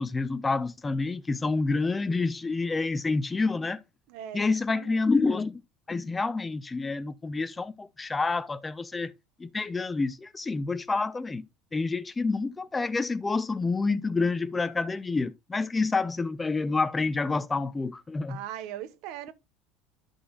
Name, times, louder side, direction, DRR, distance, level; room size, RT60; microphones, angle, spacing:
voice 1, 0.0-3.8 4.3-5.6 5.9-9.1 9.4-11.4 11.7-18.4, left 3 dB, 10° left, 0.3 m, -28 dB
voice 2, 4.1-5.0 18.3-19.3, right 11 dB, 60° right, 1.1 m, -40 dB
12.5 x 6.2 x 2.3 m
cardioid pair, 160°, 0 cm